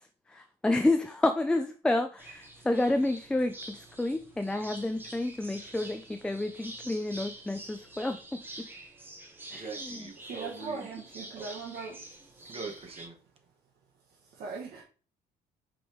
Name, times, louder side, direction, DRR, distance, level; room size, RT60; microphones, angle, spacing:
voice 1, 0.3-8.2 9.5-9.6, left 2 dB, 5° left, 0.3 m, -29 dB
sound 1, 2.2-13.1, right 1 dB, 10° right, 0.9 m, -47 dB
voice 2, 9.5-10.9 11.4-11.5 12.4-13.2, right 4 dB, 35° right, 1.1 m, -43 dB
voice 3, 10.3-12.0 12.4-12.5 14.4-14.8, right 4 dB, 65° right, 1.2 m, -39 dB
5.2 x 3.4 x 3.0 m
cardioid pair, 110°, 17 cm